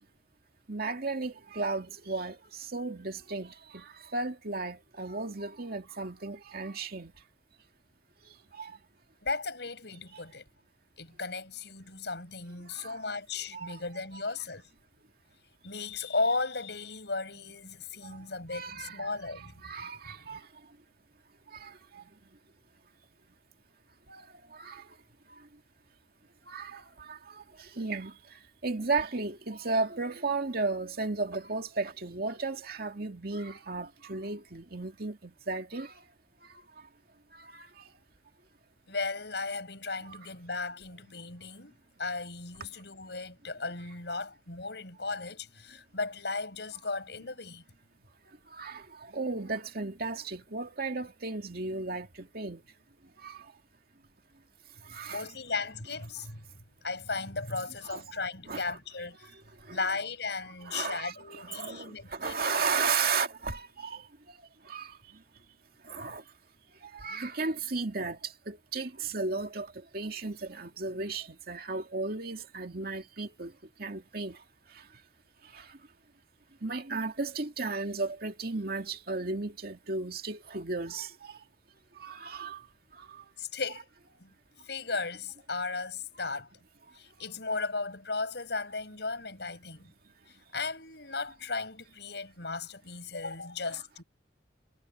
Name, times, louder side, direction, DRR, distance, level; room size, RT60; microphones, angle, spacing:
voice 1, 0.7-7.1 8.5-8.8 12.7-13.0 13.5-13.8 14.1-14.2 18.5-20.4 21.5-22.0 24.1-24.3 24.5-24.9 26.5-28.1 28.6-35.9 37.3-37.7 40.1-40.2 44.1-44.2 48.5-52.6 53.2-53.5 54.9-55.3 57.8-58.0 58.5-58.8 59.7-59.8 60.6-64.0 64.7-64.9 65.9-66.2 66.8-73.5 73.8-74.4 75.5-75.7 76.6-81.4 82.0-82.6 83.0-83.2 86.2-86.3, right 3 dB, 55° right, 2.3 m, -35 dB
voice 2, 9.2-10.4 11.0-14.7 15.6-19.5 20.0-20.1 38.9-47.6 55.1-56.5 56.8-59.4 59.7-62.5 83.4-83.9 84.2-84.3 84.6-86.5 86.9-89.9 90.3-94.0, left 3 dB, 70° left, 7.6 m, -36 dB
head